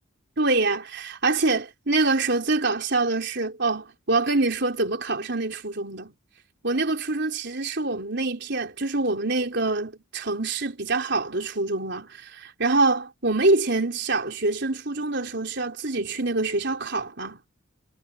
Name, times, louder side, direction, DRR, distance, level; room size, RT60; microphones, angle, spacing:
voice 1, 0.4-6.1 6.6-17.4, right 3 dB, 55° right, 4.1 m, -25 dB
head